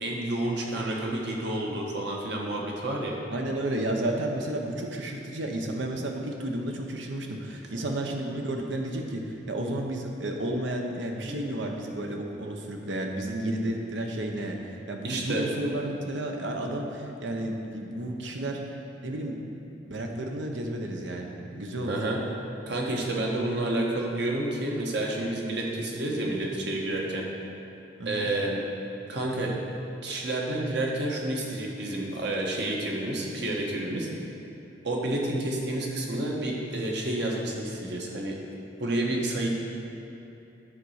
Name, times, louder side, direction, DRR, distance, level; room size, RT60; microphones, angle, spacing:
voice 1, 0.0-3.2 7.7-7.8 11.2-11.6 15.0-15.4 21.9-22.2 22.7-27.3 28.0-28.6 29.1-29.5 30.0-34.1 34.8-38.4 38.8-39.5, right 1 dB, 65° right, -2 dB, 1.3 m, -29 dB
voice 2, 3.3-14.6 14.9-18.6 19.0-19.4 19.8-22.0 28.0-28.3, right 1 dB, 90° right, 2 dB, 0.9 m, -32 dB
9.8 x 4.1 x 6.4 m, 2.9 s
head